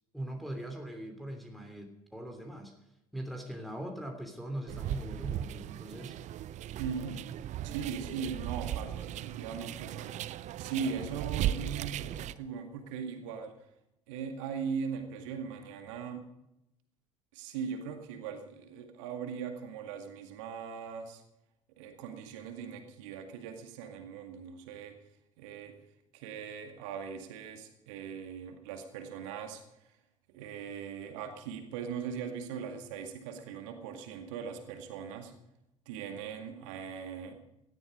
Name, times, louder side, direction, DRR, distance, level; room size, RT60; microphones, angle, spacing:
voice 1, 0.1-2.7 3.1-6.2, right 1 dB, ahead, 3 dB, 3.0 m, -41 dB
sound 1, 4.7-12.3, right 12 dB, 45° right, 0.7 m, -37 dB
voice 2, 6.8-7.2 7.6-10.1 10.6-13.6 14.1-16.3 17.3-21.2 21.8-25.0 25.4-25.8 26.1-29.9 30.3-35.3 35.9-37.4, right 6 dB, 65° right, 6 dB, 2.1 m, -40 dB
17.5 x 13.0 x 5.2 m, 0.87 s
figure-of-eight pair, 60°, 17 cm